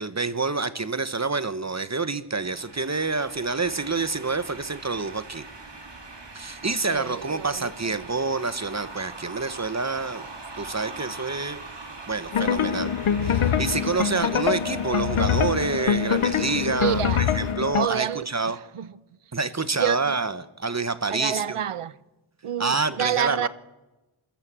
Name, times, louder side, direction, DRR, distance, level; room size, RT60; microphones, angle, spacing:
voice 1, 0.0-5.4 6.3-10.3 10.6-11.6 12.1-12.9 13.2-18.6 19.3-21.6 22.6-23.5, right 3 dB, 35° right, 1.2 m, -27 dB
sound 1, 2.4-17.5, right 3 dB, 55° right, 6.3 m, -42 dB
voice 2, 6.6-8.1 16.7-17.2 17.8-18.9 19.8-20.1 21.1-21.9 22.4-23.5, right 10 dB, 90° right, 0.9 m, -29 dB
sound 2, 12.3-17.9, left 8 dB, 80° left, 0.9 m, -24 dB
27.0 x 13.5 x 7.6 m
wide cardioid pair, 65°, 50 cm